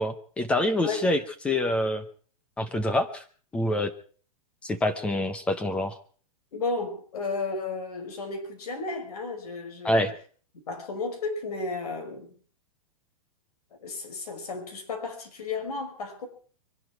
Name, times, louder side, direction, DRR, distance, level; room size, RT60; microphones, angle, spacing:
voice 1, 0.0-2.0 2.6-3.2 3.5-3.9 4.6-6.0 9.8-10.1, left 1 dB, 5° left, 10 dB, 0.7 m, -26 dB
voice 2, 6.5-10.1 10.7-12.3 13.8-16.3, left 3 dB, 80° left, 4 dB, 5.8 m, -33 dB
24.0 x 11.5 x 4.6 m, 0.43 s
supercardioid pair, 175°, 19 cm